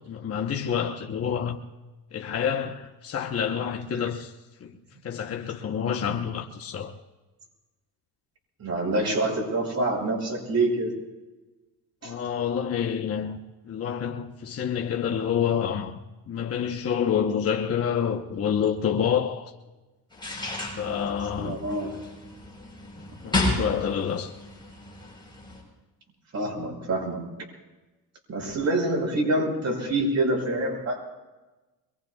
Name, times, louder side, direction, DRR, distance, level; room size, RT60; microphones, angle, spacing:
voice 1, 0.1-1.6 2.1-4.3 4.6-4.7 5.0-6.9 12.0-13.4 13.6-16.0 16.3-19.5 20.8-21.6 23.2-24.3, left 8 dB, 40° left, 1.0 m, -28 dB
voice 2, 8.6-10.9 12.0-12.1 21.4-22.0 26.3-27.2 28.3-31.0, right 2 dB, 40° right, 6.7 m, -26 dB
sound 1, 20.1-25.6, left 2 dB, 10° left, 7.5 m, -32 dB
24.0 x 23.5 x 2.3 m
cardioid pair, 115°, 39 cm